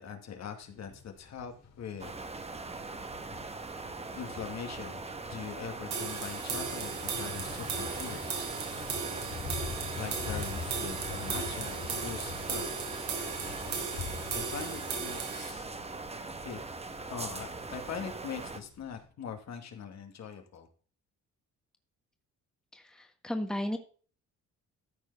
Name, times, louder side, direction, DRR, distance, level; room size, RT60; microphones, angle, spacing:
voice 1, 0.0-2.2 4.1-8.5 10.0-12.8 14.3-15.7 16.4-16.6 17.1-20.7, left 7 dB, 60° left, 5 dB, 2.2 m, -42 dB
Thunder / Bicycle, 0.6-19.0, left 5 dB, 90° left, 3.4 m, -46 dB
sound 1, 2.0-18.6, right 3 dB, 20° right, 1.2 m, -41 dB
sound 2, 5.9-15.5, right 6 dB, 70° right, 3.4 m, -37 dB
voice 2, 22.7-23.8, left 1 dB, ahead, 5 dB, 1.5 m, -34 dB
13.5 x 4.8 x 5.6 m, 0.41 s
cardioid pair, 90°, 30 cm